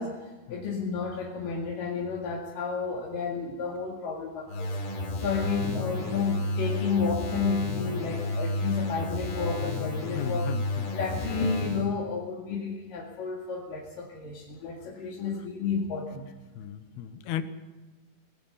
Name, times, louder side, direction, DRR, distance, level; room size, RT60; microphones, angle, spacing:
voice 1, 0.0-4.8 5.2-10.5 10.9-16.3, left 5 dB, 55° left, -3 dB, 3.5 m, -31 dB
sound 1, 4.5-11.9, left 2 dB, 85° left, 6.8 m, -31 dB
voice 2, 10.1-11.3 11.6-11.7 16.6-17.4, left 10 dB, 70° left, 11 dB, 2.7 m, -36 dB
23.5 x 20.0 x 5.6 m, 1.3 s
omnidirectional pair, 5.4 m